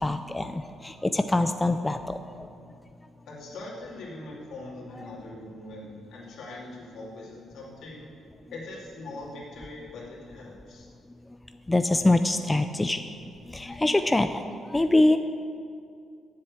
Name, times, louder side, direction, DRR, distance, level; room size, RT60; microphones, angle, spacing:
voice 1, 0.0-2.0 11.7-13.1 13.5-14.4 14.7-15.2, left 2 dB, 15° left, 9 dB, 0.4 m, -24 dB
voice 2, 3.3-8.1 8.5-10.9, left 2 dB, 75° left, -5 dB, 2.7 m, -42 dB
7.5 x 7.5 x 8.5 m, 2.4 s
cardioid pair, 90°, 0 cm